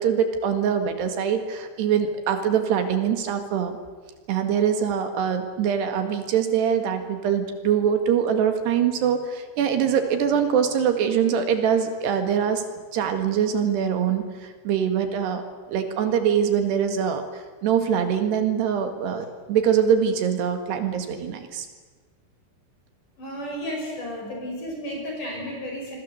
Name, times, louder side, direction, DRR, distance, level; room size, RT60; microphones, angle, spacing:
voice 1, 0.0-3.8 4.3-12.6 12.9-15.4 15.7-21.7, right 8 dB, 65° right, 8 dB, 3.8 m, -23 dB
voice 2, 23.2-26.0, equal, 45° left, -1 dB, 6.8 m, -33 dB
27.0 x 22.5 x 7.9 m, 1.4 s
omnidirectional pair, 5.4 m